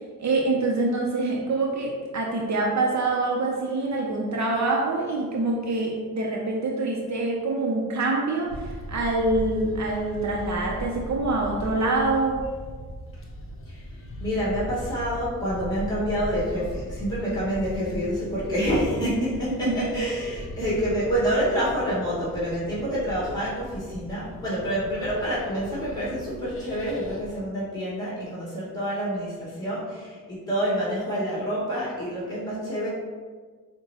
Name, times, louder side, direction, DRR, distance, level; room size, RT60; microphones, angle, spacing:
voice 1, 0.2-12.5 19.7-20.0, right 2 dB, 50° right, -1 dB, 0.6 m, -25 dB
sound 1, 8.5-27.4, equal, 40° left, 0.7 m, -38 dB
voice 2, 14.2-32.9, equal, 10° left, -8 dB, 1.5 m, -27 dB
5.2 x 2.2 x 2.8 m, 1.5 s
cardioid pair, 65°, 36 cm